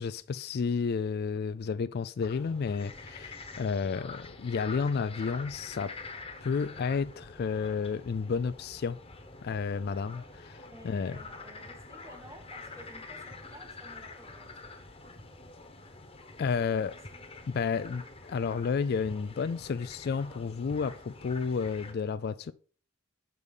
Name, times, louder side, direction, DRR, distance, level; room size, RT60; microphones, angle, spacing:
voice 1, 0.0-5.9 6.4-9.0 9.4-11.2 16.4-16.9 17.5-22.5, left 5 dB, 50° left, 0.3 m, -31 dB
sound 1, 2.2-21.9, left 3 dB, 25° left, 1.1 m, -46 dB
voice 2, 10.7-15.0 16.4-17.2, right 1 dB, 15° right, 1.3 m, -54 dB
6.8 x 5.3 x 6.4 m
head